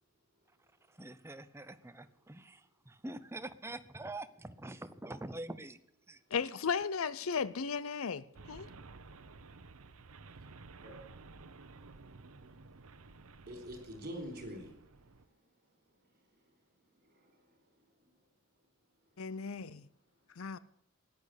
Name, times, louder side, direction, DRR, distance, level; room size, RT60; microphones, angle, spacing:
voice 1, 0.9-5.8 6.1-6.2, right 2 dB, 10° right, 0.7 m, -45 dB
voice 2, 6.3-8.7 19.2-19.9 20.4-20.6, left 6 dB, 75° left, 0.6 m, -35 dB
sound 1, 8.3-15.2, right 3 dB, 90° right, 0.9 m, -54 dB
voice 3, 12.2-12.6 13.2-14.8 15.1-15.3 16.2-16.3 17.0-18.2, equal, 45° right, 4.5 m, -49 dB
13.5 x 10.5 x 8.3 m
head